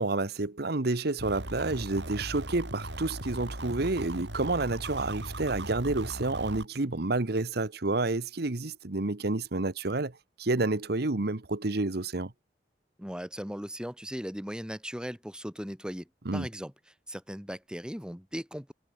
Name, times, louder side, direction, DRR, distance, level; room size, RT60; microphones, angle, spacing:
voice 1, 0.0-10.1 10.4-12.3 16.2-16.5, right 2 dB, 65° right, 1.2 m, -29 dB
sound 1, 1.2-6.7, right 1 dB, 85° right, 6.5 m, -38 dB
voice 2, 13.0-16.7 17.1-18.7, equal, 5° right, 4.2 m, -38 dB
head